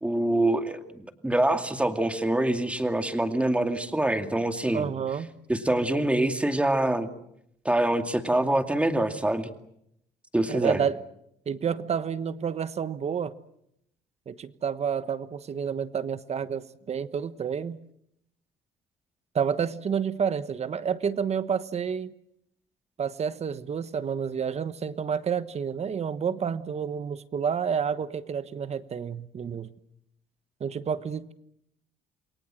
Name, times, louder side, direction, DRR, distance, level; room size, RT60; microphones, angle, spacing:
voice 1, 0.0-4.9 5.5-7.1 7.6-9.5 10.3-10.8, right 1 dB, 5° right, 7 dB, 2.3 m, -25 dB
voice 2, 4.7-5.3 10.5-11.0 11.5-13.3 14.3-17.8 19.3-22.1 23.0-29.7 30.6-31.3, right 7 dB, 40° right, 14 dB, 1.2 m, -29 dB
28.5 x 22.5 x 7.7 m, 0.76 s
cardioid pair, 110°, 17 cm